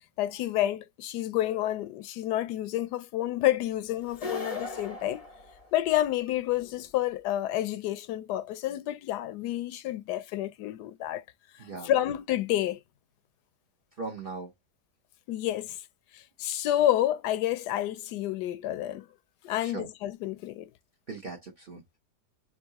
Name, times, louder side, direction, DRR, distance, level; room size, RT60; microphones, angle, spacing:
voice 1, 0.2-5.3 5.7-11.2 11.8-12.8 15.3-15.8 16.1-19.1 19.4-20.7, left 13 dB, 80° left, 1.1 m, -29 dB
sound 1, 4.1-6.1, left 3 dB, 35° left, 0.6 m, -38 dB
voice 2, 11.6-11.9 14.0-14.5 19.6-19.9 21.1-22.0, right 3 dB, 40° right, 0.9 m, -39 dB
4.7 x 2.7 x 2.8 m
omnidirectional pair, 1.8 m